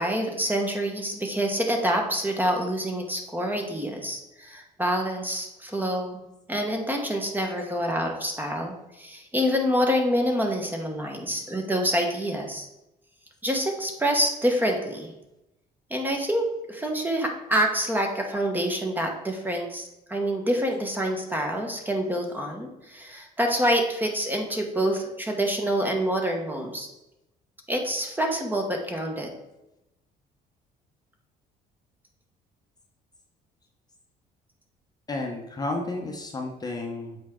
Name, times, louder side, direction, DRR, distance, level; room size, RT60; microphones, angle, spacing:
voice 1, 0.0-6.2 6.5-12.7 13.4-15.1 15.9-26.9 27.7-29.3, equal, 10° right, 2 dB, 1.1 m, -27 dB
voice 2, 35.1-37.2, left 2 dB, 25° left, 2 dB, 0.9 m, -32 dB
7.4 x 4.6 x 3.7 m, 0.91 s
cardioid pair, 110°, 17 cm